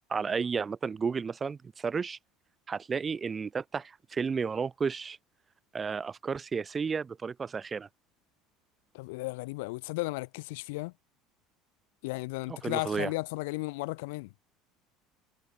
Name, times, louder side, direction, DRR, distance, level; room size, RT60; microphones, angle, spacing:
voice 1, 0.1-2.2 2.7-5.2 5.7-7.9 12.5-13.1, right 5 dB, 25° right, 1.8 m, -32 dB
voice 2, 8.9-10.9 12.0-14.3, left 24 dB, 90° left, 3.0 m, -35 dB
supercardioid pair, 125°, 0 cm